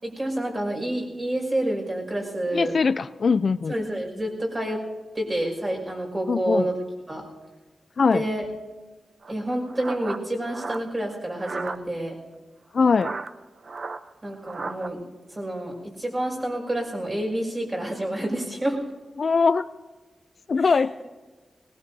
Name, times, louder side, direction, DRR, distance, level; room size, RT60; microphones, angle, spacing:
voice 1, 0.0-2.7 3.7-4.8 5.1-6.7 7.1-7.2 8.1-8.5 9.3-12.2 14.2-15.0 15.3-18.8 20.7-20.8, right 1 dB, 30° right, -1 dB, 5.6 m, -28 dB
voice 2, 2.5-3.7 6.3-6.7 8.0-8.2 12.7-13.2 19.2-19.7 20.5-20.9, left 5 dB, 55° left, 14 dB, 0.4 m, -21 dB
sound 1, 9.2-11.8 12.8-14.9, right 4 dB, 50° right, 0.6 m, -35 dB
20.5 x 20.0 x 2.7 m, 1.3 s
wide cardioid pair, 90°, 0 cm